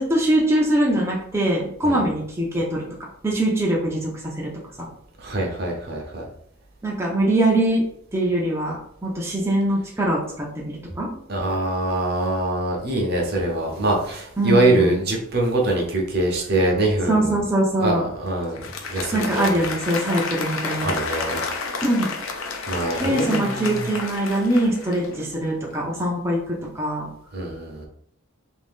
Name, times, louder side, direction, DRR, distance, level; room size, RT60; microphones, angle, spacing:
voice 1, 0.0-2.8 3.2-4.5 4.8-4.9 6.8-7.8 8.1-11.1 14.4-15.0 17.1-18.1 19.1-20.9 21.8-22.1 23.0-27.1, right 1 dB, 10° right, -4 dB, 0.5 m, -22 dB
voice 2, 5.2-6.3 11.3-17.4 17.8-18.6 18.9-19.5 20.8-21.4 22.7-23.8 27.3-27.9, right 2 dB, 50° right, 0 dB, 0.7 m, -23 dB
Applause, 18.4-25.4, left 4 dB, 70° left, 0.6 m, -31 dB
2.8 x 2.6 x 3.5 m, 0.67 s
head